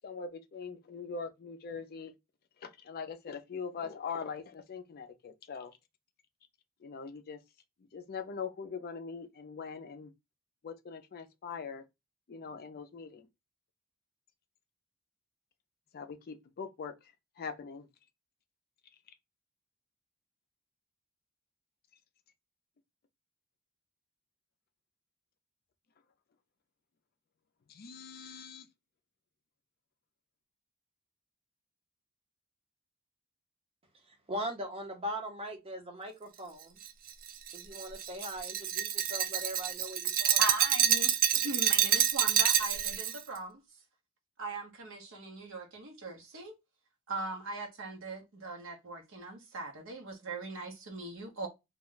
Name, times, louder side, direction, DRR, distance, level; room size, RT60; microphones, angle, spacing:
voice 1, 0.0-2.1 2.6-5.7 6.8-7.4 7.9-10.1 10.6-11.8 12.3-13.3 15.9-16.9 17.4-17.9 27.7-28.7, left 5 dB, 45° left, 0.4 m, -42 dB
voice 2, 34.3-36.8 37.5-40.4, equal, 25° right, 0.7 m, -40 dB
Glass, 36.8-43.2, right 10 dB, 40° right, 0.3 m, -28 dB
voice 3, 40.4-43.6 44.4-46.5 47.1-51.5, right 2 dB, 60° right, 0.9 m, -40 dB
2.3 x 2.2 x 3.7 m
head